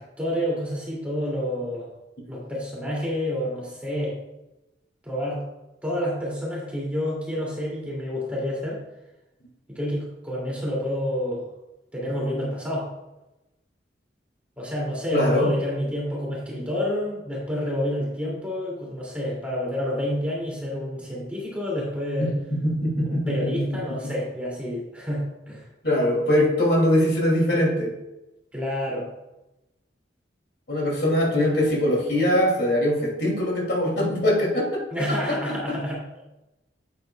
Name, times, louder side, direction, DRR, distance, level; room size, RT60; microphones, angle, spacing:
voice 1, 0.0-1.9 2.3-4.2 5.0-5.4 5.8-8.8 9.7-11.4 11.9-12.9 14.6-22.3 23.0-25.7 28.5-29.1 34.9-36.0, left 1 dB, 5° right, -5 dB, 2.6 m, -28 dB
voice 2, 15.1-15.5 22.2-23.8 25.8-27.9 30.7-34.8 35.1-35.8, left 1 dB, 60° left, -2 dB, 2.7 m, -22 dB
8.9 x 8.9 x 2.3 m, 0.96 s
head